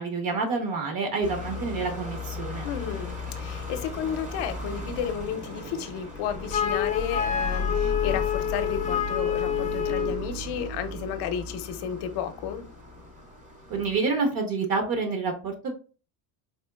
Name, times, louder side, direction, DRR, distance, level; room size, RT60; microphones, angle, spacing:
voice 1, 0.0-2.6 13.7-15.5, right 4 dB, 45° right, 5 dB, 0.8 m, -28 dB
sound 1, 1.2-14.0, left 3 dB, 15° right, 0.6 m, -35 dB
voice 2, 2.6-12.6, left 8 dB, 60° left, 9 dB, 0.6 m, -32 dB
Wind instrument woodwind instrument, 6.5-10.2, left 8 dB, 20° left, 0.3 m, -27 dB
4.3 x 2.9 x 2.2 m, 0.35 s
cardioid pair, 160°, 47 cm